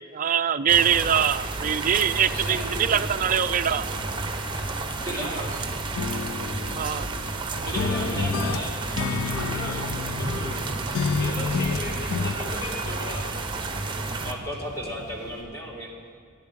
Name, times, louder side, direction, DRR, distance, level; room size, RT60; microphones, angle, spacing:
voice 1, 0.1-3.9 6.7-7.1, right 9 dB, 40° right, 10 dB, 0.4 m, -23 dB
sound 1, 0.7-14.3, right 3 dB, 20° right, 1.0 m, -31 dB
voice 2, 2.2-3.0 5.1-5.8 7.6-8.7 9.1-10.7 11.1-13.3, left 1 dB, 50° left, -1 dB, 2.7 m, -36 dB
Wind / Ocean / Boat Water vehicle, 3.8-15.4, equal, 85° left, 3.5 m, -42 dB
voice 3, 5.0-5.4 7.7-8.7 14.2-15.9, equal, 15° left, -2 dB, 2.6 m, -34 dB
sound 2, 6.0-7.4 7.8-10.6 10.9-12.4, left 5 dB, 70° left, 0.4 m, -30 dB
13.0 x 11.0 x 7.5 m, 2.3 s
head